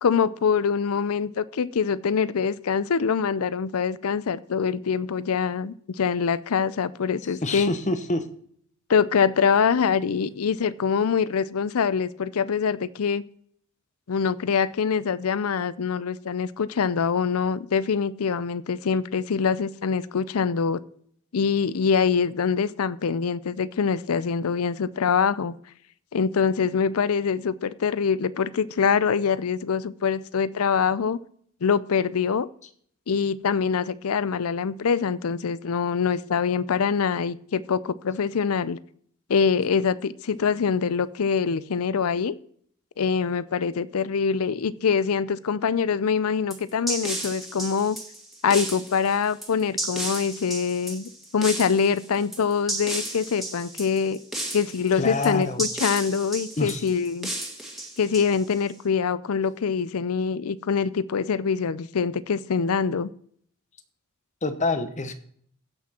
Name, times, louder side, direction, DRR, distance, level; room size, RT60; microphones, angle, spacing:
voice 1, 0.0-7.7 8.9-13.2 14.1-20.8 21.3-25.5 26.1-31.2 31.6-32.5 33.1-38.8 39.3-42.4 43.0-48.0 48.4-54.2 54.5-57.3 58.0-63.1, left 6 dB, 80° left, 18 dB, 0.5 m, -24 dB
voice 2, 7.3-8.3 55.0-55.6 56.6-56.9 64.4-65.1, left 2 dB, 35° left, 10 dB, 1.0 m, -27 dB
sound 1, 46.5-58.7, right 1 dB, ahead, 1.8 m, -33 dB
16.0 x 6.0 x 4.3 m, 0.62 s
head